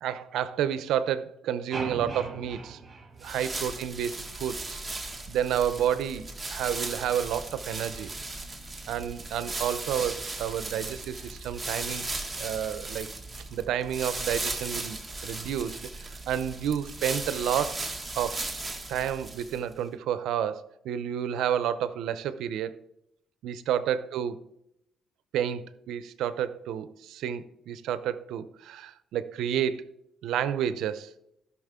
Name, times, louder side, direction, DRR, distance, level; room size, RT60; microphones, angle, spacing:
voice 1, 0.0-2.8 3.2-4.8 5.3-8.1 8.9-13.1 13.5-17.8 18.1-18.5 18.9-22.8 23.4-24.4 25.3-29.9 30.2-31.1, right 9 dB, 85° right, 14 dB, 0.7 m, -30 dB
sound 1, 1.7-4.0, right 4 dB, 35° right, 2.3 m, -39 dB
sound 2, 3.2-19.7, right 2 dB, 15° right, 1.8 m, -37 dB
15.5 x 6.2 x 3.7 m, 0.79 s
cardioid pair, 90°, 0 cm